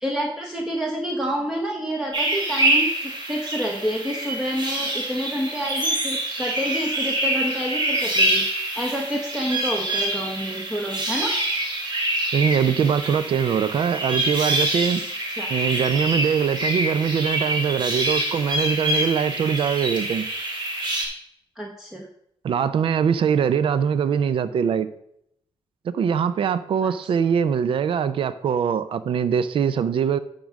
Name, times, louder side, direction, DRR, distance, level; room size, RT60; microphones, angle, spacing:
voice 1, 0.0-11.3 15.4-15.5 21.6-22.1 26.8-26.9, equal, 5° right, 0 dB, 1.1 m, -28 dB
sound 1, 2.1-21.0, right 1 dB, 50° right, 3.0 m, -26 dB
voice 2, 12.3-15.0 15.5-20.3 22.4-24.9 25.8-30.2, right 7 dB, 65° right, 13 dB, 0.5 m, -22 dB
10.5 x 3.8 x 6.3 m, 0.73 s
cardioid pair, 110°, 10 cm